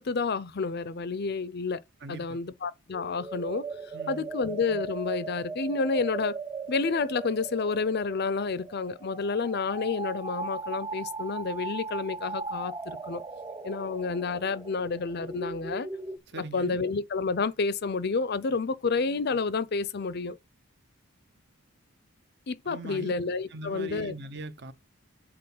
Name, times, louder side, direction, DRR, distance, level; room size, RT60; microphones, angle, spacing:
voice 1, 0.0-1.8 2.1-3.6 4.1-6.4 6.7-13.2 13.6-15.9 16.4-20.4 22.5-24.1, left 4 dB, 50° left, 0.5 m, -30 dB
voice 2, 2.0-2.4 3.9-4.4 16.3-16.8 22.6-23.1 23.5-24.7, right 2 dB, 50° right, 0.8 m, -41 dB
sound 1, 2.9-16.2, right 4 dB, 15° right, 0.5 m, -38 dB
7.6 x 4.2 x 5.8 m
head